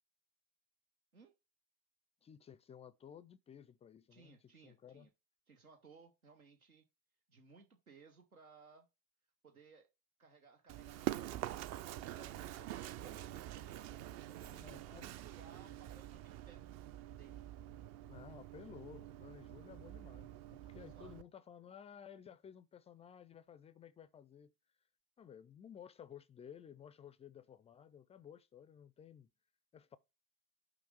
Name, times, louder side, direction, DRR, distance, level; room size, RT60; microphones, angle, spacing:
voice 1, 2.2-5.1 14.5-15.1 18.1-24.5 25.2-29.3 29.7-30.0, left 8 dB, 15° left, 0.3 m, -55 dB
voice 2, 4.1-5.1 5.5-6.8 7.3-8.9 9.4-9.9 10.2-11.5 11.9-14.0 14.3-16.7 17.2-17.4 20.7-21.1, right 5 dB, 85° right, 0.9 m, -61 dB
Run, 10.7-21.2, right 13 dB, 40° right, 0.5 m, -46 dB
5.8 x 5.0 x 4.7 m
figure-of-eight pair, 65°, 41 cm